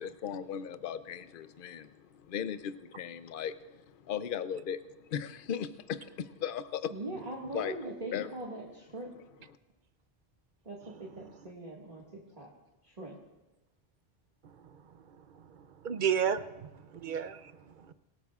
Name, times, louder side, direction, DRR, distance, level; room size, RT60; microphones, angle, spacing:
voice 1, 0.0-6.9 7.5-7.8 8.1-8.3, left 8 dB, 60° left, 0.8 m, -37 dB
voice 2, 6.9-9.1 10.6-12.5 12.8-13.2, right 2 dB, 40° right, 2.0 m, -41 dB
voice 3, 14.4-14.8 15.1-17.9, right 8 dB, 55° right, 0.7 m, -34 dB
26.0 x 17.5 x 2.4 m
omnidirectional pair, 1.1 m